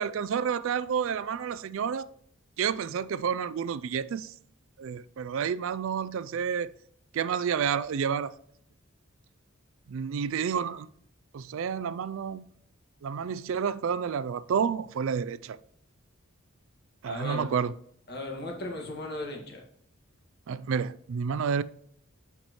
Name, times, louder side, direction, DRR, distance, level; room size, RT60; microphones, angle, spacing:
voice 1, 0.0-2.1 2.6-4.3 4.8-6.7 7.1-8.3 9.9-10.9 11.3-12.4 13.0-15.6 17.0-17.7 20.5-21.6, right 7 dB, 65° right, 0.3 m, -30 dB
voice 2, 17.1-17.6 18.1-19.6, left 1 dB, 45° left, 1.7 m, -36 dB
9.0 x 5.8 x 3.0 m
head